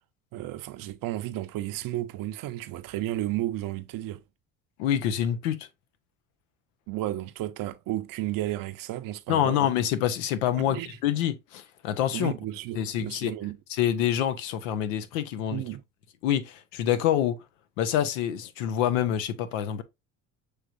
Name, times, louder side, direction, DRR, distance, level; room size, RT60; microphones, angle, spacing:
voice 1, 0.3-4.2 6.9-9.6 10.6-11.0 12.1-13.6 15.5-15.8, right 14 dB, 60° right, 0.7 m, -33 dB
voice 2, 4.8-5.7 9.3-12.3 12.7-13.3 13.7-15.6 16.2-17.4 17.8-19.8, left 10 dB, 85° left, 0.7 m, -26 dB
6.5 x 3.2 x 2.5 m
hypercardioid pair, 70°, 38 cm